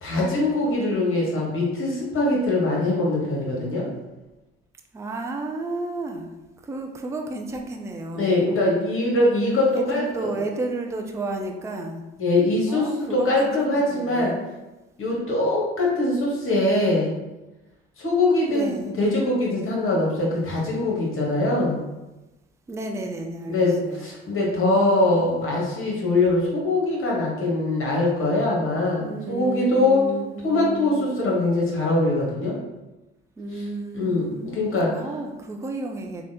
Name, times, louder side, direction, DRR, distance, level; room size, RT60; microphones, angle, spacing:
voice 1, 0.0-3.9 8.2-10.3 12.2-14.3 15.0-17.1 18.0-18.7 19.0-21.8 23.5-30.1 30.4-32.6 33.9-34.9, left 2 dB, 40° left, -3 dB, 1.2 m, -22 dB
voice 2, 4.9-6.3 6.6-8.4 9.7-12.0 12.7-14.3 18.5-18.9 22.7-24.1 29.0-31.3 33.4-36.2, right 2 dB, 10° right, 3 dB, 0.3 m, -32 dB
3.2 x 2.3 x 2.7 m, 1.0 s
hypercardioid pair, 50°, 32 cm